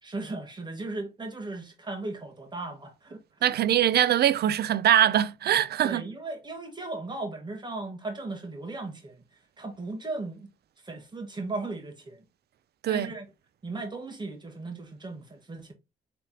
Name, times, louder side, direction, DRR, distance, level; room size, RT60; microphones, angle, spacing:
voice 1, 0.0-3.5 5.8-9.1 9.6-10.5 10.8-12.2 12.9-13.3 13.6-15.7, right 2 dB, 25° right, 1.5 m, -37 dB
voice 2, 3.4-6.0 12.8-13.1, right 11 dB, 60° right, 0.5 m, -22 dB
3.8 x 3.4 x 2.8 m
supercardioid pair, 60°, 18 cm